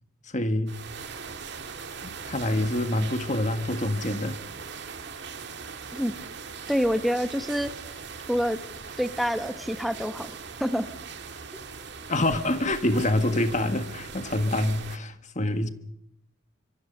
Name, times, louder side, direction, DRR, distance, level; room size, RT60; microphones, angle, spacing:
voice 1, 0.3-0.8 2.0-4.4 12.1-15.7, left 1 dB, 35° left, 1.6 m, -26 dB
sound 1, 0.7-15.0, right 5 dB, 55° right, 2.1 m, -40 dB
voice 2, 6.7-7.7 8.3-8.6 9.0-10.3 10.6-10.9, equal, ahead, 0.9 m, -26 dB
25.5 x 24.0 x 5.4 m
head